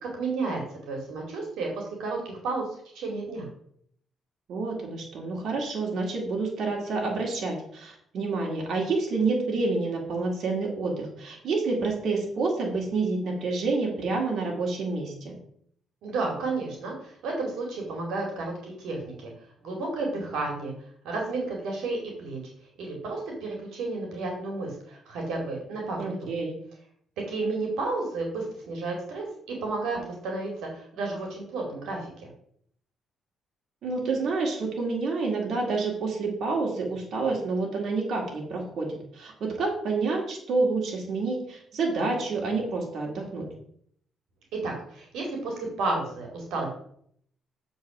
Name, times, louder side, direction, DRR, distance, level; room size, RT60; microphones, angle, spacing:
voice 1, 0.0-2.6 2.9-3.5 16.0-18.5 18.8-19.3 19.6-20.7 21.0-22.4 22.8-26.3 27.3-32.0 44.6-46.7, right 3 dB, 85° right, 0 dB, 2.1 m, -32 dB
voice 2, 4.5-15.4 26.0-26.5 33.8-43.5, right 3 dB, 65° right, -1 dB, 2.2 m, -28 dB
7.3 x 4.0 x 5.9 m, 0.65 s
cardioid pair, 90°, 0 cm